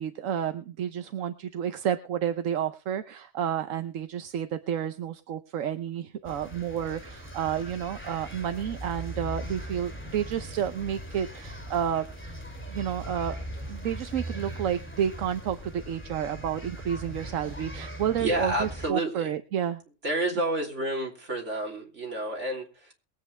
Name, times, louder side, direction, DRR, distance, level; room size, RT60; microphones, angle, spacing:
voice 1, 0.0-12.0 12.7-13.3 13.7-19.8, right 9 dB, 85° right, 9 dB, 1.2 m, -30 dB
sound 1, 6.2-18.9, right 1 dB, 10° left, 2.3 m, -40 dB
voice 2, 18.2-19.3 20.0-22.9, right 1 dB, 65° right, 0 dB, 3.4 m, -30 dB
22.5 x 8.6 x 3.3 m, 0.32 s
omnidirectional pair, 1.3 m